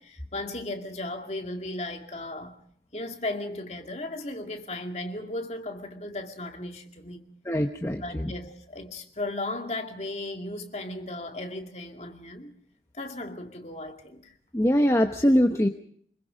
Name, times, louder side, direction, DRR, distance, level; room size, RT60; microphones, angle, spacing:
voice 1, 0.0-2.6 2.9-7.3 8.0-12.5 12.9-14.3, left 2 dB, 40° left, 2.3 m, -36 dB
voice 2, 7.5-8.3 14.5-15.7, equal, 15° left, 0.9 m, -22 dB
25.5 x 22.0 x 5.1 m
head